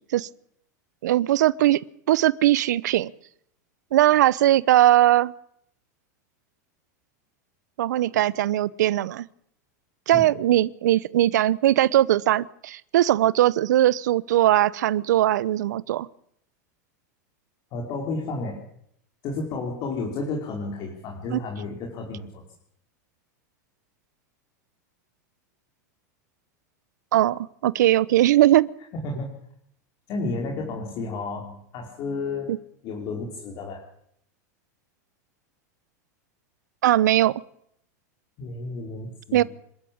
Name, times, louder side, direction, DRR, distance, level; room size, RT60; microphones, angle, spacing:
voice 1, 1.0-1.8 2.1-3.1 3.9-5.3 7.8-9.2 10.1-16.1 21.3-21.4 27.1-28.7 32.5-32.6 36.8-37.3 39.3-39.4, right 14 dB, 80° right, 20 dB, 0.8 m, -20 dB
voice 2, 17.7-18.6 19.2-22.4 29.0-29.3 30.1-32.6 32.8-33.8 38.4-39.4, left 3 dB, 45° left, 1 dB, 4.7 m, -32 dB
26.5 x 13.0 x 8.7 m, 0.72 s
supercardioid pair, 130°, 9 cm